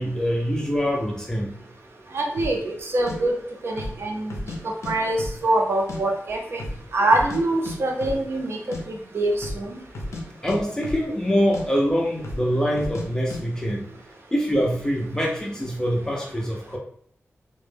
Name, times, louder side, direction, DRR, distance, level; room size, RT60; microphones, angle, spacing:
voice 1, 0.0-1.5 10.4-13.9 14.3-16.8, equal, 15° left, -2 dB, 0.4 m, -24 dB
voice 2, 2.1-4.4 4.6-6.6 6.9-9.8, right 2 dB, 55° right, 1 dB, 0.4 m, -24 dB
sound 1, 2.4-2.6 3.1-3.2 3.7-4.0 4.3-4.9 5.2-6.0 6.3-6.4 6.6-7.4 7.7-8.2 8.5-8.8 9.3-9.6 9.9-10.2 10.5-11.3 11.5-11.7 12.2-12.5 12.8-13.1 13.3-13.4, left 1 dB, 80° left, 0.5 m, -33 dB
2.0 x 2.0 x 3.2 m, 0.62 s
wide cardioid pair, 155°, 5 cm